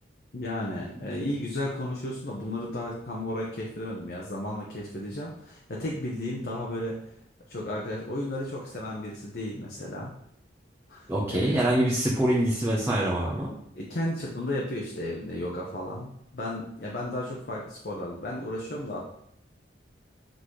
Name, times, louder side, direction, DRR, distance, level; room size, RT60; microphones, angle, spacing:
voice 1, 0.3-7.0 7.5-10.1 10.9-11.6 13.7-19.0, left 1 dB, 60° left, -3 dB, 1.0 m, -34 dB
voice 2, 11.1-13.5, right 1 dB, 15° right, -6 dB, 0.9 m, -25 dB
7.8 x 4.0 x 3.2 m, 0.73 s
head